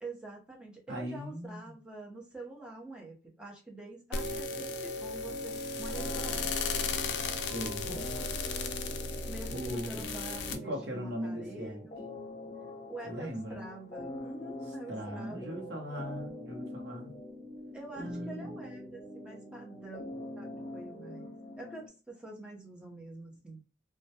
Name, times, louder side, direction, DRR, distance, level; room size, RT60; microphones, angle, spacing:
voice 1, 0.0-6.5 9.3-12.0 12.9-15.6 17.7-20.0 20.4-23.6, right 2 dB, 5° right, 0.6 m, -46 dB
voice 2, 0.9-1.7 7.4-8.1 9.5-10.0 10.5-11.8 13.0-13.6 14.9-17.1 18.0-18.5, equal, 65° right, 0.8 m, -39 dB
sound 1, 4.1-10.6, left 4 dB, 60° left, 0.4 m, -35 dB
sound 2, 5.9-21.9, left 1 dB, 30° left, 0.9 m, -44 dB
2.2 x 2.1 x 2.7 m
head